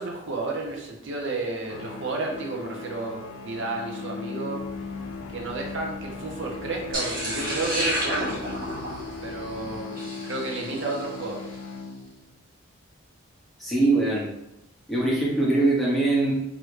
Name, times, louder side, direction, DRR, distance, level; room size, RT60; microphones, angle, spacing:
voice 1, 0.0-4.7 5.3-8.4 9.2-11.6, right 3 dB, 60° right, 0 dB, 0.6 m, -32 dB
sound 1, 1.6-12.4, left 4 dB, 80° left, 0.3 m, -38 dB
sound 2, 4.6-9.8, equal, 25° right, 0.8 m, -46 dB
sound 3, 6.9-11.2, right 1 dB, 45° right, 1.1 m, -31 dB
voice 2, 13.6-14.3 14.9-16.3, right 2 dB, ahead, -7 dB, 0.7 m, -22 dB
3.1 x 2.5 x 3.1 m, 0.87 s
head